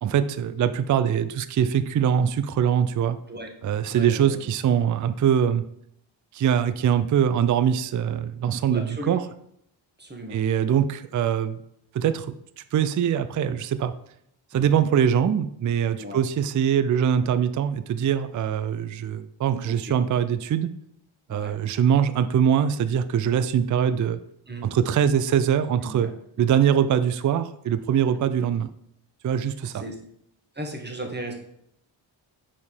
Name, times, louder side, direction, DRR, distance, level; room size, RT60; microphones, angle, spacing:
voice 1, 0.0-3.2 3.6-5.6 6.3-9.2 10.3-11.6 11.9-13.9 14.5-20.7 21.3-24.2 24.6-26.1 26.4-28.7 29.2-29.8, right 8 dB, 40° right, 12 dB, 0.4 m, -23 dB
voice 2, 3.9-4.4 8.7-9.2 10.0-10.4 14.5-14.8 16.0-16.2 19.6-20.0 21.3-21.6 24.5-24.7 25.8-26.1 28.0-28.2 29.7-29.9 30.5-31.3, right 1 dB, 20° right, 2 dB, 1.4 m, -36 dB
4.9 x 4.3 x 5.4 m, 0.73 s
cardioid pair, 75°, 49 cm